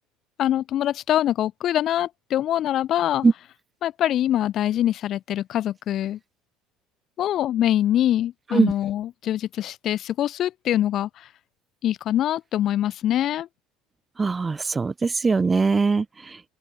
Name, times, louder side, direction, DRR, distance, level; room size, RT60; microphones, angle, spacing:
voice 1, 0.4-3.3 3.8-6.2 7.2-11.3 11.8-13.5, left 12 dB, 55° left, 6.6 m, -24 dB
voice 2, 14.2-16.4, right 4 dB, 25° right, 1.0 m, -21 dB
open air
supercardioid pair, 85°, 0 cm